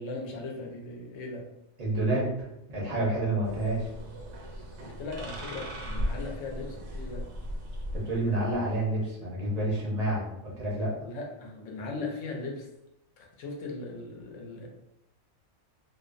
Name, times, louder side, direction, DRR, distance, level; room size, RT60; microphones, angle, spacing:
voice 1, 0.0-1.5 4.8-7.3 11.0-12.7 13.2-14.7, left 3 dB, 70° left, 0 dB, 0.9 m, -38 dB
voice 2, 1.8-3.9 7.9-11.0, right 1 dB, 40° right, -4 dB, 0.6 m, -29 dB
sound 1, 3.4-8.8, equal, 80° right, 1.0 m, -37 dB
2.5 x 2.0 x 2.4 m, 0.84 s
omnidirectional pair, 1.4 m